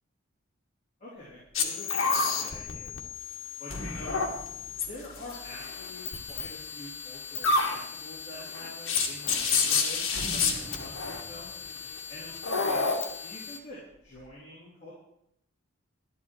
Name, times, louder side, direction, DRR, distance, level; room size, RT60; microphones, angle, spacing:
voice 1, 1.0-3.0 3.6-4.2 4.8-11.5 12.1-14.9, left 1 dB, 30° left, -9 dB, 3.6 m, -46 dB
sound 1, 1.3-1.6 2.0-7.3 7.9-8.6 9.0-9.1 9.3-13.3 13.6-14.3, equal, 55° right, 3.4 m, -46 dB
sound 2, 1.5-13.6, left 4 dB, 70° left, 1.7 m, -31 dB
sound 3, 8.2-8.4 8.7-9.7 10.5-11.2, left 1 dB, 10° left, 5.7 m, -51 dB
11.5 x 11.5 x 4.6 m, 0.77 s
head